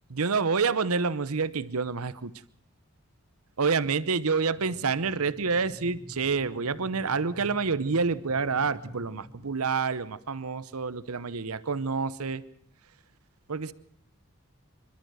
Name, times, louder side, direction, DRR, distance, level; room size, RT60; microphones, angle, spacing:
voice 1, 0.1-2.3 3.6-12.4 13.5-13.7, right 4 dB, 80° right, 16 dB, 0.9 m, -28 dB
sound 1, 4.5-9.5, equal, 25° right, 2.8 m, -48 dB
26.5 x 12.5 x 7.8 m, 0.67 s
head